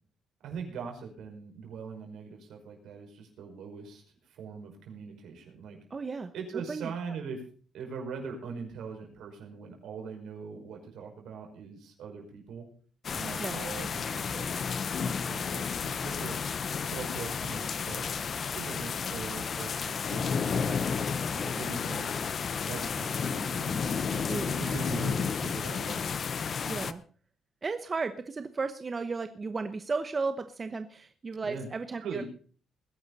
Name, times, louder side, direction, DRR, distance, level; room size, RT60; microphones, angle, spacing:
voice 1, 0.4-5.8 6.3-7.4 7.7-12.7 13.1-16.4 16.8-18.0 18.5-22.1 22.7-26.1 31.4-31.7 32.0-32.2, right 5 dB, 75° right, 2 dB, 5.4 m, -41 dB
voice 2, 5.9-6.3 6.7-6.9 13.4-13.6 24.3-24.7 26.6-27.0 27.6-32.2, right 4 dB, 35° right, 9 dB, 0.9 m, -34 dB
sound 1, 13.0-26.9, left 6 dB, 50° left, 0.8 m, -32 dB
20.5 x 10.5 x 4.1 m, 0.43 s
cardioid pair, 90°, 0 cm